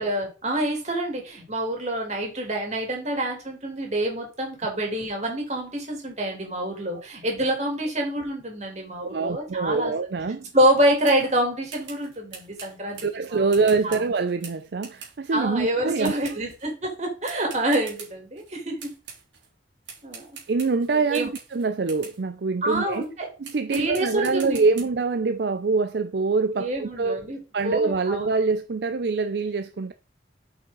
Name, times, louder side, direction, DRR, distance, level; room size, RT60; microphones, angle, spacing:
voice 1, 0.0-9.9 10.5-13.0 13.3-14.0 15.3-18.9 20.0-20.3 21.1-21.3 22.6-23.3 23.7-24.8 26.6-28.3, right 1 dB, 40° right, 3.0 m, -26 dB
voice 2, 9.0-10.5 13.0-16.3 20.5-23.0 23.4-27.2 27.5-29.9, right 4 dB, 60° right, 0.5 m, -25 dB
sound 1, 11.0-11.3 11.7-15.4 16.0-16.7 17.2-18.5 18.8-19.5 19.8-22.2 22.9-23.1 23.4-24.8, right 6 dB, 90° right, 3.5 m, -44 dB
8.5 x 5.7 x 3.9 m
head